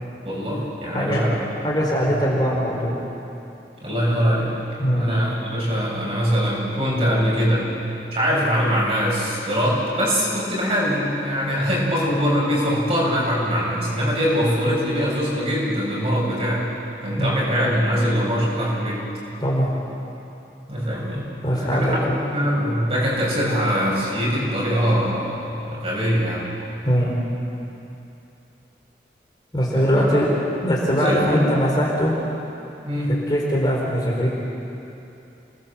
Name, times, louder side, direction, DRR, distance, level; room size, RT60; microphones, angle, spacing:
voice 1, 0.2-1.4 2.0-2.2 3.8-4.6 5.0-7.6 8.1-16.7 17.0-19.0 20.7-26.4 29.7-30.2 30.9-31.5 32.8-33.1, equal, 35° right, -5 dB, 7.2 m, -22 dB
voice 2, 1.6-3.0 4.8-5.1 17.2-17.3 19.4-19.7 21.4-22.2 26.8-27.1 29.5-30.3 30.6-32.1 33.1-34.3, equal, 25° left, -4 dB, 4.3 m, -21 dB
29.0 x 20.5 x 7.5 m, 2.9 s
head